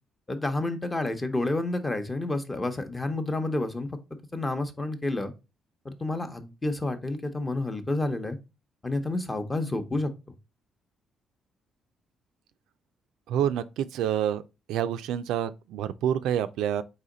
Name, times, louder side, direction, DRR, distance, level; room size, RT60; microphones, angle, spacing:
voice 1, 0.3-4.0 4.3-5.3 5.8-8.4 8.8-10.1, left 2 dB, 20° left, 0.7 m, -29 dB
voice 2, 13.3-14.4 14.7-16.8, right 10 dB, 90° right, 0.3 m, -27 dB
4.2 x 2.9 x 3.8 m
cardioid pair, 90°, 0 cm